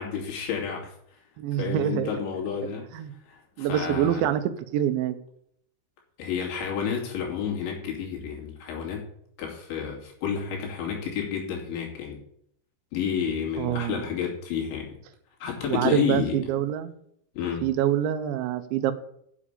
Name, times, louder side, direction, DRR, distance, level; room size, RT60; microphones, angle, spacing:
voice 1, 0.0-1.2 1.6-2.9 3.3-4.2 6.2-9.0 9.4-12.2 12.9-14.9 15.4-16.4 17.3-17.7, left 7 dB, 80° left, 0 dB, 4.9 m, -30 dB
voice 2, 1.4-2.1 2.9-3.1 3.6-4.4 4.7-5.2 13.6-14.0 15.7-16.9 17.6-18.9, right 11 dB, 85° right, 11 dB, 3.2 m, -25 dB
8.4 x 7.5 x 8.4 m, 0.70 s
omnidirectional pair, 5.2 m